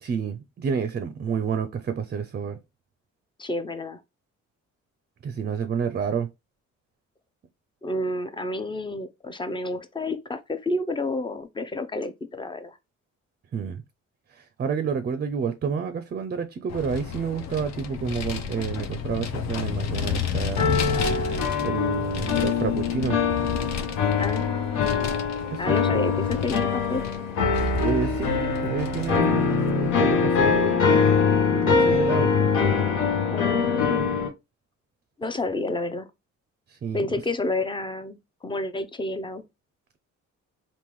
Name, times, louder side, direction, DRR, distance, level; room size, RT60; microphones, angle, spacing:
voice 1, 0.0-2.6 5.2-6.3 13.5-13.8 14.3-20.9 21.6-23.2 25.5-26.0 27.8-32.3 36.7-37.1, right 6 dB, 35° right, 0.5 m, -29 dB
voice 2, 3.4-4.0 7.8-12.8 24.1-25.2 25.6-27.0 33.3-34.1 35.2-36.1 36.9-39.4, left 2 dB, 15° left, 0.5 m, -30 dB
Vehicle, 16.7-29.9, left 8 dB, 60° left, 0.6 m, -32 dB
sound 1, 20.6-34.3, left 5 dB, 80° left, 1.0 m, -23 dB
3.6 x 2.6 x 3.0 m
cardioid pair, 90°, 30 cm